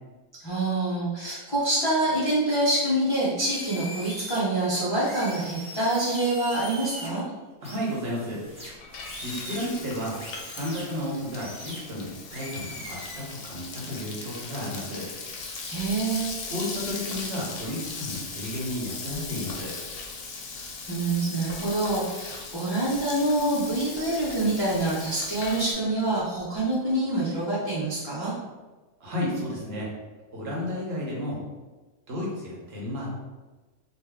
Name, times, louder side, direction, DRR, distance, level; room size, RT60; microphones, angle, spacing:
voice 1, 0.4-7.2 15.7-16.3 20.9-28.3, right 2 dB, 30° left, -10 dB, 0.5 m, -26 dB
sound 1, 3.4-4.4 5.0-7.1 7.6-9.7 10.2-10.8 11.4-11.8 12.3-13.2, equal, 5° right, 0.7 m, -40 dB
voice 2, 7.6-8.4 9.2-10.1 10.5-15.1 16.5-19.7 29.0-29.9 30.3-31.4 32.1-33.1, left 1 dB, 50° right, -5 dB, 1.1 m, -32 dB
Frying (food), 8.5-25.7, left 4 dB, 70° left, 0.9 m, -38 dB
2.6 x 2.2 x 3.4 m, 1.2 s
omnidirectional pair, 1.5 m